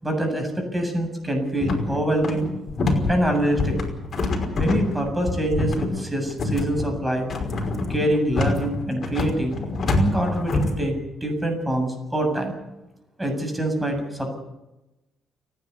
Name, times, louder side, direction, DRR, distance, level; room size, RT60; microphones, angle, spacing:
voice 1, 0.0-2.5 3.1-3.8 4.5-7.3 7.9-9.6 9.9-12.6 13.2-14.3, right 1 dB, 10° right, 4 dB, 7.8 m, -25 dB
sound 1, 1.6-10.8, left 2 dB, 45° left, 5.4 m, -25 dB
30.0 x 10.5 x 8.5 m, 0.97 s
cardioid pair, 90°, 0 cm